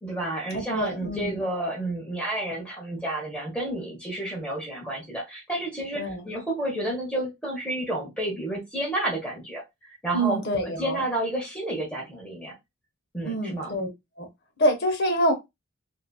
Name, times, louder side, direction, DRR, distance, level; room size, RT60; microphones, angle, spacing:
voice 1, 0.0-9.6 10.0-10.4 10.8-12.5 13.1-13.7, right 1 dB, 5° left, 1.2 m, -30 dB
voice 2, 0.5-1.4 5.9-6.3 10.1-11.0 13.2-13.9 14.2-14.3 14.6-15.3, right 1 dB, 50° left, 0.8 m, -26 dB
2.9 x 2.6 x 2.3 m
head